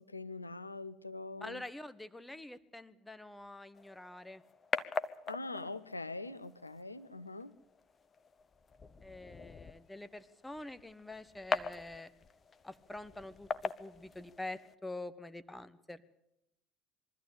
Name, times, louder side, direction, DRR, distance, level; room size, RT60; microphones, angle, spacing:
voice 1, 0.0-1.6 5.3-7.5, left 2 dB, 90° left, 16 dB, 0.6 m, -43 dB
voice 2, 1.4-4.4 9.0-12.1 12.6-16.1, left 2 dB, 10° left, 15 dB, 1.2 m, -46 dB
sound 1, 3.8-14.7, left 5 dB, 30° left, 0.9 m, -42 dB
22.5 x 14.0 x 8.6 m, 0.84 s
figure-of-eight pair, 60°, 0 cm